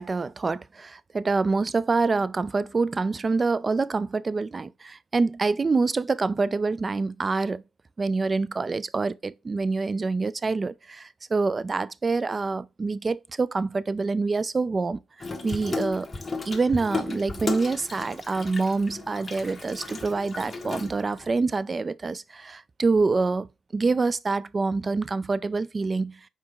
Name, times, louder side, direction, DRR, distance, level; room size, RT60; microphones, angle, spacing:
voice 1, 0.0-7.6 8.0-15.0 15.4-16.1 16.5-23.5 23.7-26.2, right 3 dB, 35° right, 0.4 m, -26 dB
Water tap faucet / Sink (filling or washing), 15.2-21.3, left 4 dB, 35° left, 1.5 m, -35 dB
5.5 x 4.6 x 3.8 m
supercardioid pair, 60°, 0 cm